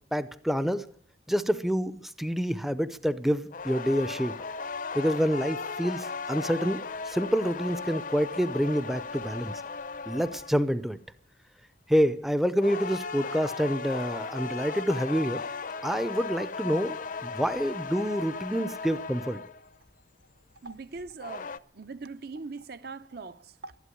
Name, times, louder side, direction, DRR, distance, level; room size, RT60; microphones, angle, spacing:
voice 1, 0.1-0.8 1.3-4.3 4.9-6.8 7.1-9.5 10.1-11.0 11.9-15.4 15.8-17.0 17.2-19.4, equal, ahead, 0.6 m, -27 dB
sound 1, 3.5-10.7 12.6-19.7 21.0-21.6, left 4 dB, 45° left, 0.7 m, -36 dB
voice 2, 20.6-23.8, right 4 dB, 60° right, 0.8 m, -41 dB
13.0 x 11.5 x 10.0 m
head